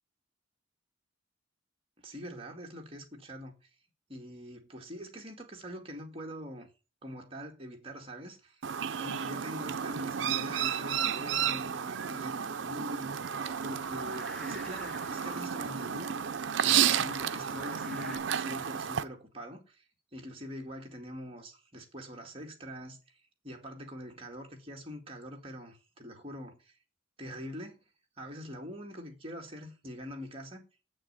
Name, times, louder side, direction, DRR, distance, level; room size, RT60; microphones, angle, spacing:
voice 1, 2.0-3.6 4.1-6.7 7.0-8.6 9.0-13.2 13.6-16.1 16.6-19.8 20.1-23.0 23.4-26.7 27.2-27.8 28.2-30.7, equal, 30° right, 2.1 m, -44 dB
Chirp tweet, 8.6-19.0, right 8 dB, 75° right, 0.6 m, -32 dB
sound 1, 13.2-18.2, equal, ahead, 2.1 m, -47 dB
7.9 x 6.6 x 7.9 m
head